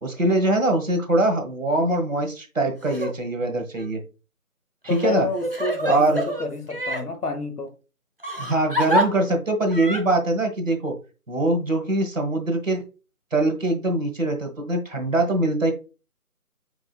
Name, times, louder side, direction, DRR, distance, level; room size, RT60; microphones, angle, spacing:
voice 1, 0.0-4.0 4.8-5.3 5.8-6.2 8.4-10.9 11.3-12.8 13.3-15.7, right 2 dB, 60° right, 1.4 m, -23 dB
Crying sobbing, 2.8-3.1 3.7-3.9 4.9-7.0 8.2-9.1 9.7-10.0, equal, 40° right, 0.7 m, -26 dB
voice 2, 4.9-7.7, left 4 dB, 90° left, 1.3 m, -29 dB
4.9 x 4.7 x 2.3 m
figure-of-eight pair, 180°, 44 cm